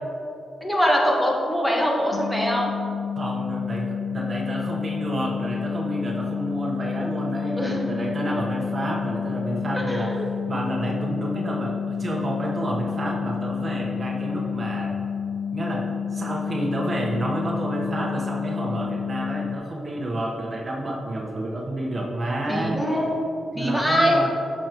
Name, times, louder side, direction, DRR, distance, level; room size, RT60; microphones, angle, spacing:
voice 1, 0.6-2.7 7.6-7.8 9.7-10.1 22.5-23.1 23.6-24.2, equal, 5° left, -2 dB, 1.4 m, -22 dB
sound 1, 2.1-19.6, left 7 dB, 60° left, 0.4 m, -30 dB
voice 2, 3.2-10.1 10.5-14.9 15.5-22.8 23.5-24.3, right 1 dB, 40° right, -1 dB, 1.1 m, -29 dB
8.7 x 6.5 x 3.0 m, 2.7 s
cardioid pair, 65°, 0 cm